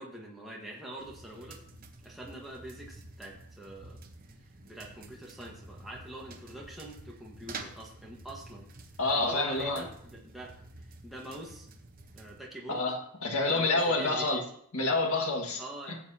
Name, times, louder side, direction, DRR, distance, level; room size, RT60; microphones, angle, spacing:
voice 1, 0.0-1.6 2.0-4.0 4.7-8.7 9.1-11.7 12.1-12.8 13.4-14.3 15.6-16.0, right 1 dB, ahead, -4 dB, 1.4 m, -44 dB
sound 1, 1.0-12.4, right 3 dB, 40° right, 1.0 m, -49 dB
voice 2, 9.0-9.8 12.7-14.4 14.7-15.6 15.9-16.0, left 2 dB, 80° left, 3 dB, 1.8 m, -28 dB
16.0 x 7.5 x 2.8 m, 0.66 s
head